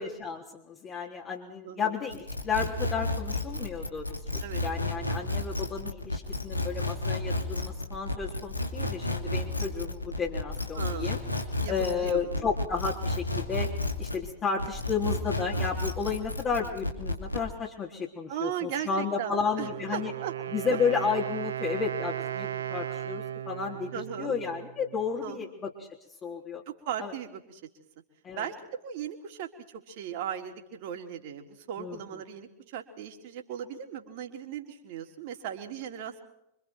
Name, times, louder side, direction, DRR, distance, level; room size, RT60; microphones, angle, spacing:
voice 1, 0.0-11.2 11.7-13.7 14.0-20.1 20.5-25.9 26.2-26.6 27.0-27.1 28.2-28.5 31.8-32.0, left 5 dB, 30° left, -2 dB, 3.8 m, -32 dB
voice 2, 1.6-1.9 4.4-4.6 10.8-11.2 11.6-11.7 12.0-12.5 18.3-20.3 20.7-20.8 23.9-24.4 25.2-25.4 26.9-27.6 28.4-36.2, right 9 dB, 50° right, 3 dB, 3.6 m, -37 dB
sound 1, 2.1-14.3 14.6-17.5, left 2 dB, 85° left, 2.7 m, -31 dB
Wind instrument woodwind instrument, 19.4-25.2, right 10 dB, 65° right, 1.3 m, -36 dB
28.0 x 25.5 x 4.6 m, 0.80 s
figure-of-eight pair, 90°, 0 cm